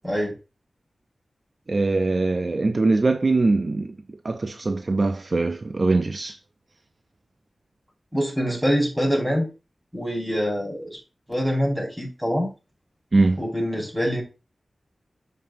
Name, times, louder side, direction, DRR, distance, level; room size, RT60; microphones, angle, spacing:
voice 1, 0.0-0.3 8.1-9.5 9.9-11.0 11.3-12.5 13.4-14.2, equal, 10° right, 5.0 m, -24 dB
voice 2, 1.7-4.0 4.2-6.4 13.1-13.4, right 3 dB, 50° right, 0.5 m, -22 dB
13.0 x 5.4 x 2.6 m
wide cardioid pair, 80°, 0 cm